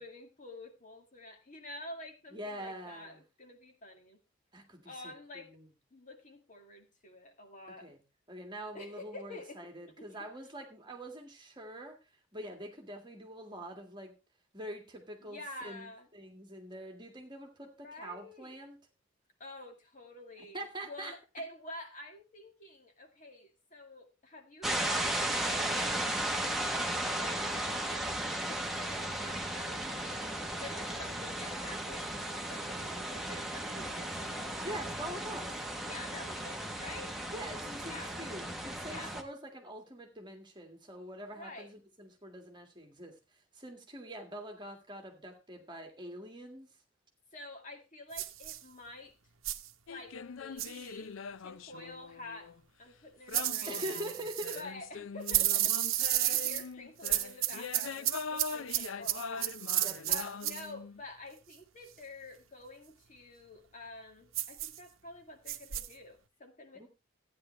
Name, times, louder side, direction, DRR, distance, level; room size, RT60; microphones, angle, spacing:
voice 1, 0.0-4.2 4.8-5.6 5.9-7.9 8.7-9.7 10.0-10.3 15.2-16.1 17.8-18.6 19.4-26.6 27.1-27.8 28.2-30.3 30.6-34.5 35.9-37.2 37.9-38.2 38.8-39.2 41.4-41.7 47.3-49.1 49.9-51.1 51.4-52.5 52.8-54.2 54.5-59.5 60.1-66.9, left 2 dB, 40° left, 3 dB, 2.1 m, -48 dB
voice 2, 2.3-3.2 4.5-5.7 7.8-8.0 8.3-12.0 12.3-14.1 14.5-18.8 20.5-21.1 34.6-35.5 37.3-43.2 43.5-46.7 53.7-54.6 59.8-60.2 66.7-66.9, right 1 dB, 25° right, 3 dB, 1.9 m, -44 dB
sound 1, 24.6-39.2, right 1 dB, ahead, 1.1 m, -35 dB
sound 2, 48.1-48.6 49.4-49.7 50.6-50.8 53.3-54.6 55.3-56.6 57.0-60.6 64.3-64.8 65.5-65.9, right 13 dB, 80° right, 0.8 m, -32 dB
sound 3, 49.9-52.6 53.3-61.0, left 5 dB, 80° left, 0.5 m, -43 dB
14.0 x 9.6 x 3.2 m, 0.29 s
head